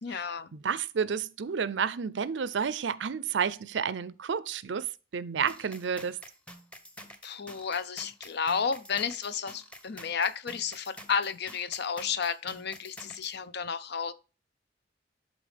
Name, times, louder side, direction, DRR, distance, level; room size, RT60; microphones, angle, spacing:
voice 1, 0.0-0.5 7.2-14.1, left 6 dB, 65° left, 0.6 m, -32 dB
voice 2, 0.5-4.9 5.1-6.2, right 6 dB, 80° right, 0.5 m, -30 dB
sound 1, 5.5-13.4, equal, 5° left, 0.8 m, -49 dB
11.0 x 4.0 x 3.4 m
head